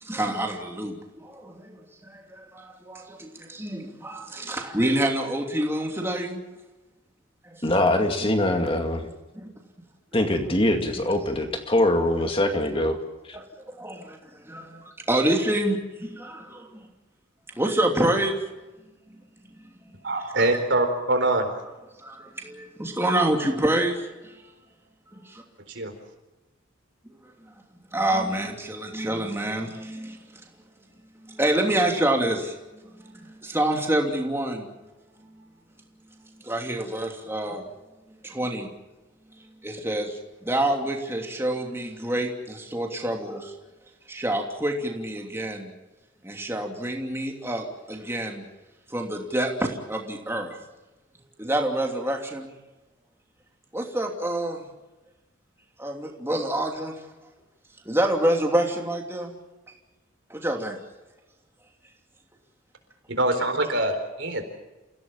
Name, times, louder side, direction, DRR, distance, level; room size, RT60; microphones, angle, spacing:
voice 1, 0.0-1.8 2.0-6.4 7.5-8.7 9.3-9.5 12.4-12.5 13.3-13.4 13.8-16.8 17.6-18.5 19.8-19.9 22.0-24.3 25.1-25.4 27.9-30.2 31.2-32.6 33.0-34.7 36.4-37.6 38.2-38.7 39.6-43.5 44.1-45.7 46.2-48.4 48.9-50.6 51.4-52.5 53.7-54.6 55.8-56.9 57.8-59.4 60.3-60.8, right 1 dB, 10° right, 2.9 m, -27 dB
voice 2, 7.6-9.1 10.1-13.0 13.3-13.4, left 1 dB, 25° left, 2.3 m, -23 dB
voice 3, 20.0-21.5 25.7-25.9 63.1-64.4, right 2 dB, 60° right, 4.3 m, -24 dB
29.0 x 16.5 x 7.3 m
head